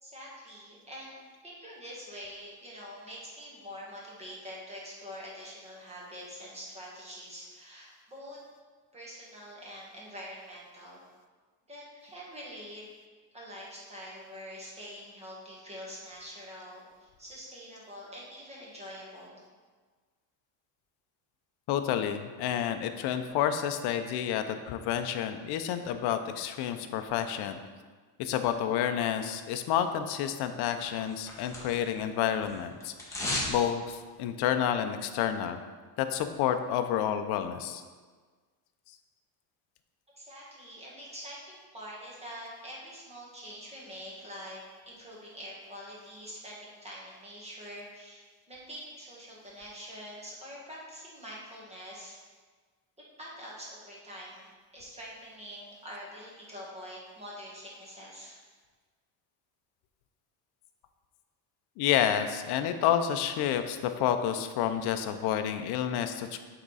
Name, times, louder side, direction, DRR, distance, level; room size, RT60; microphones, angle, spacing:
voice 1, 0.0-8.4 8.9-11.0 11.7-12.8 13.3-19.4 40.2-44.6 44.8-52.2 53.2-58.4, equal, 15° right, -5 dB, 1.6 m, -45 dB
voice 2, 21.7-27.6 28.2-35.6 36.0-37.8 61.8-66.4, left 9 dB, 55° left, 8 dB, 0.6 m, -29 dB
sound 1, 30.8-32.0 32.3-33.6 33.9-34.0, left 1 dB, 5° left, 1.1 m, -35 dB
8.6 x 3.6 x 4.0 m, 1.5 s
cardioid pair, 150°, 48 cm